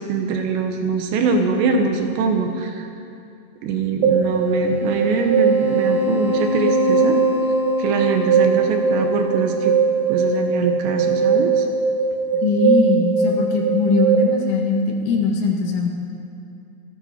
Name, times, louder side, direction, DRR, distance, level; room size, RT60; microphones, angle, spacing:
voice 1, 0.1-2.9 3.6-7.2 7.8-9.8 10.1-11.7, right 4 dB, 75° right, 4 dB, 3.0 m, -22 dB
sound 1, 4.0-14.2, right 4 dB, 60° right, 3.4 m, -20 dB
voice 2, 12.4-15.9, left 4 dB, 85° left, 1 dB, 4.1 m, -20 dB
26.5 x 10.0 x 4.3 m, 2.5 s
omnidirectional pair, 5.4 m